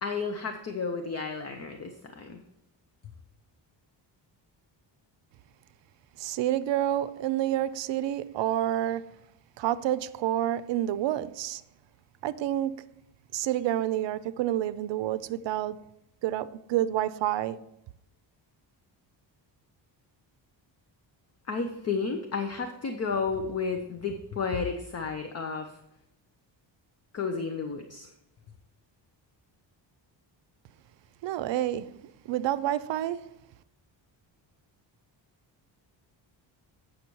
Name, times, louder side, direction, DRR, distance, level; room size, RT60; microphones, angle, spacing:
voice 1, 0.0-2.4 21.5-25.8 27.1-28.1, left 5 dB, 35° left, 0.6 m, -32 dB
voice 2, 6.2-9.1 9.6-11.6 12.2-12.8 13.3-15.8 16.2-17.6 31.2-32.0 32.3-33.3, right 12 dB, 70° right, 0.6 m, -29 dB
8.4 x 6.4 x 4.5 m
cardioid pair, 160°, 46 cm